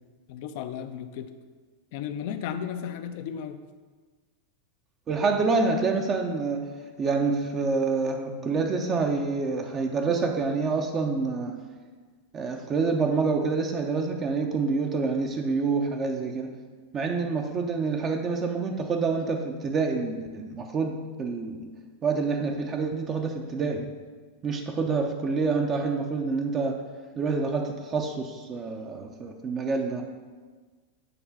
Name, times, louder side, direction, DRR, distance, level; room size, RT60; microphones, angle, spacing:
voice 1, 0.3-1.3 1.9-3.6, left 8 dB, 60° left, 9 dB, 0.5 m, -34 dB
voice 2, 5.1-6.7 7.0-11.6 12.3-16.6 16.9-21.7 22.0-23.9 24.4-26.8 27.2-30.1, right 4 dB, 30° right, 3 dB, 0.7 m, -27 dB
6.7 x 3.2 x 5.9 m, 1.4 s
hypercardioid pair, 100°, 0 cm